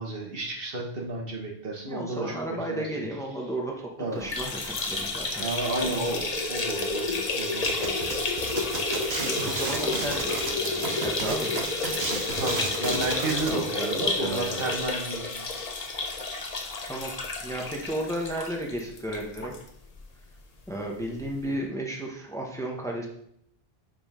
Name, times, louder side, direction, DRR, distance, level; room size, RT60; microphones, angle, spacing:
voice 1, 0.0-3.1 4.0-4.3 5.4-8.4 12.0-15.5 21.0-21.6, right 2 dB, 65° right, 0 dB, 1.5 m, -33 dB
voice 2, 1.9-5.4 5.8-6.1 9.2-11.9 13.5-14.8 16.9-17.1 17.4-19.5 20.7-23.1, right 1 dB, 5° left, 0 dB, 1.1 m, -34 dB
sound 1, 4.2-19.6 20.0-20.1 20.4-20.5 21.5-21.6, left 3 dB, 40° left, 0.9 m, -30 dB
sound 2, 7.7-13.6, right 4 dB, 80° right, 1.2 m, -33 dB
5.5 x 5.2 x 5.6 m, 0.72 s
omnidirectional pair, 1.0 m